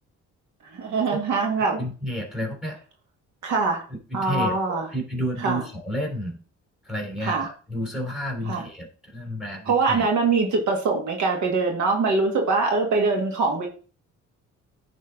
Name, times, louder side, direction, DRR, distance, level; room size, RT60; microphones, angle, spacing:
voice 1, 0.6-1.8 3.4-3.8 4.1-4.9 5.4-5.6 7.2-7.5 8.5-8.6 9.7-13.7, right 4 dB, 70° right, 1 dB, 2.0 m, -23 dB
voice 2, 1.6-2.8 3.9-6.4 6.8-10.1, equal, ahead, 0 dB, 3.3 m, -31 dB
10.5 x 3.7 x 3.8 m, 0.38 s
cardioid pair, 90°, 30 cm